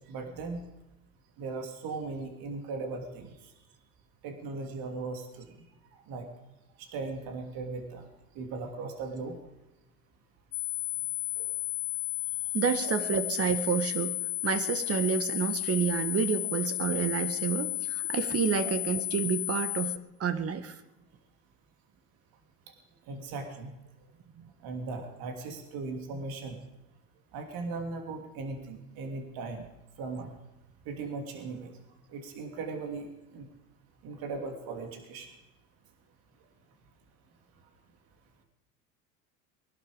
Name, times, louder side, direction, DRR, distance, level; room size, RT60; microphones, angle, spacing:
voice 1, 0.1-0.6 1.4-3.3 4.2-5.5 6.1-6.3 6.8-8.1 8.3-9.4 11.4-11.5 18.6-18.7 23.1-23.7 24.6-26.6 27.3-29.6 30.0-30.3 30.8-31.7 32.1-33.1 33.3-33.5 34.0-35.3, right 3 dB, 60° right, 4 dB, 3.0 m, -38 dB
sound 1, 10.5-20.0, left 22 dB, 65° left, 0.9 m, -33 dB
voice 2, 12.5-14.1 14.4-19.9 20.2-20.7 24.4-24.5, right 7 dB, 35° right, 11 dB, 1.7 m, -29 dB
21.5 x 11.5 x 5.1 m, 0.96 s
hypercardioid pair, 80°, 41 cm